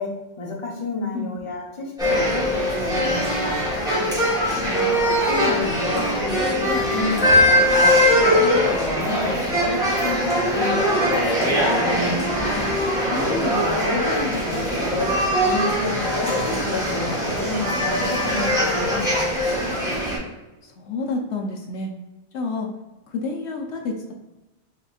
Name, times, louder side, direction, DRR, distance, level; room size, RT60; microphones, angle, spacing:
voice 1, 0.0-3.6 5.2-11.3 13.1-19.3, left 3 dB, 30° left, -2 dB, 0.6 m, -30 dB
sound 1, 2.0-20.2, equal, 5° right, 1.0 m, -21 dB
voice 2, 4.6-5.1 12.0-12.7 20.6-21.9 22.3-22.7 23.1-24.1, left 3 dB, 65° left, 2 dB, 0.7 m, -30 dB
4.1 x 3.7 x 2.3 m, 1.0 s
omnidirectional pair, 1.4 m